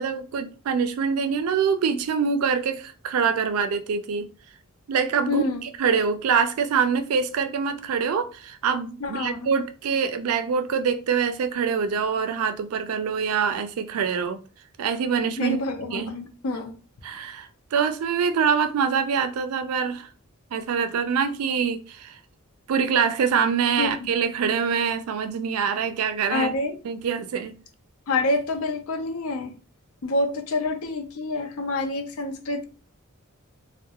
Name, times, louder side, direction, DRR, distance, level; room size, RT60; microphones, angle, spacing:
voice 1, 0.0-4.3 4.9-14.4 14.8-15.6 15.9-16.1 17.0-20.1 20.5-22.2 22.7-26.5 26.8-27.6, right 6 dB, 85° right, 0.4 m, -25 dB
voice 2, 5.3-5.6 9.0-9.5 15.4-16.7 23.8-23.9 26.3-26.7 28.1-29.6 30.0-32.7, left 2 dB, 75° left, 0.5 m, -27 dB
2.3 x 2.1 x 2.8 m
head